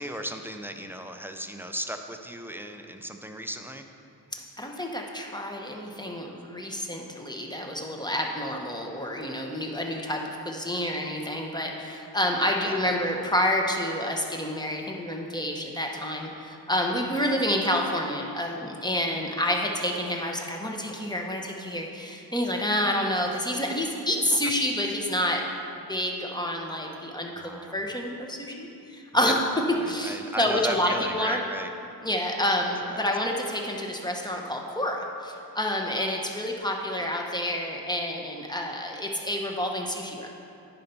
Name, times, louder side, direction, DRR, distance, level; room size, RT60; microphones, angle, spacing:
voice 1, 0.0-3.9 12.6-12.9 23.5-23.7 27.4-27.8 29.2-29.3 29.7-31.7 32.8-33.0, right 1 dB, 5° right, 5 dB, 0.5 m, -36 dB
voice 2, 4.3-25.4 25.9-29.4 29.9-31.4 32.0-40.3, left 1 dB, 10° left, 0 dB, 1.0 m, -28 dB
9.9 x 4.4 x 5.3 m, 2.7 s
wide cardioid pair, 60°, 39 cm